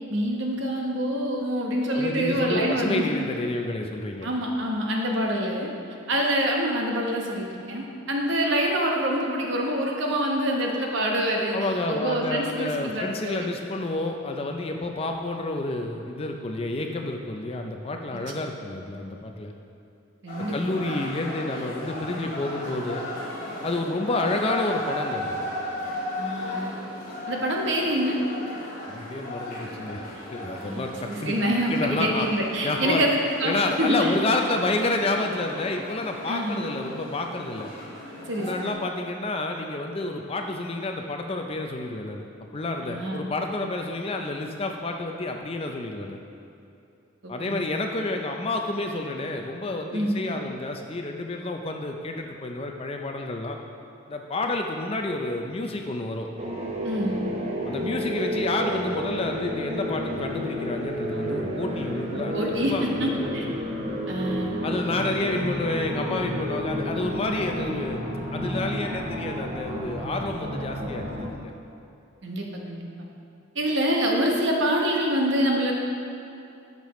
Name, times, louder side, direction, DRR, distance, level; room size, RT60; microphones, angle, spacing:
voice 1, 0.1-3.0 4.2-5.7 6.1-11.6 11.9-13.6 20.2-20.7 26.2-26.7 27.3-28.2 30.7-34.1 36.3-36.6 38.3-38.7 42.8-43.3 47.2-47.6 49.9-50.2 56.8-57.3 62.1-63.5 64.1-64.7 72.2-72.8 73.5-75.7, equal, 55° right, 0 dB, 1.1 m, -26 dB
voice 2, 1.9-4.3 11.5-19.5 20.4-23.0 23.6-25.4 28.9-30.0 30.3-31.4 31.7-32.3 32.6-33.1 33.4-37.7 38.4-42.2 42.5-46.2 47.3-53.6 54.1-56.3 57.7-63.3 64.6-68.0 68.3-71.5, left 2 dB, 25° left, 3 dB, 0.4 m, -29 dB
sound 1, 20.3-38.7, left 1 dB, 40° left, 2.0 m, -36 dB
sound 2, 56.4-71.3, equal, 30° right, 0.8 m, -31 dB
10.5 x 6.7 x 3.1 m, 2.6 s
head